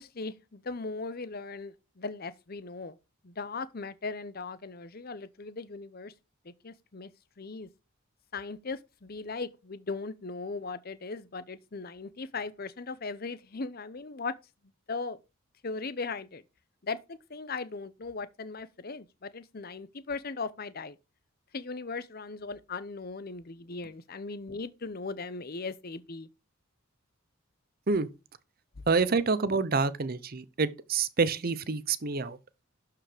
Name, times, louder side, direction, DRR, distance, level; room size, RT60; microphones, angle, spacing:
voice 1, 0.0-3.0 3.2-6.1 6.4-7.1 7.4-7.7 8.3-14.4 14.9-15.2 15.6-16.4 16.8-21.0 21.5-26.3 28.8-28.9, left 4 dB, 45° left, 0.7 m, -38 dB
voice 2, 28.9-32.4, right 4 dB, 45° right, 0.7 m, -27 dB
12.0 x 4.8 x 5.0 m
head